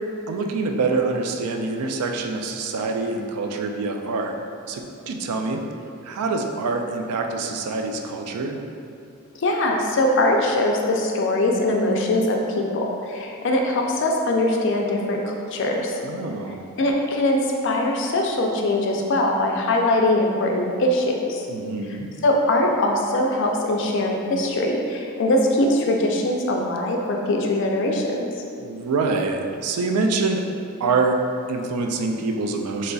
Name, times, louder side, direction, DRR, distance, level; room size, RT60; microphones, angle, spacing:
voice 1, 0.3-4.3 4.7-5.6 6.0-8.6 16.0-16.6 21.5-22.1 28.6-30.4 30.8-31.2 31.5-32.9, right 3 dB, 85° right, 3 dB, 0.3 m, -25 dB
voice 2, 9.4-16.0 16.8-21.4 22.2-28.3, left 1 dB, 55° left, 1 dB, 0.4 m, -22 dB
3.8 x 3.1 x 2.3 m, 2.5 s
head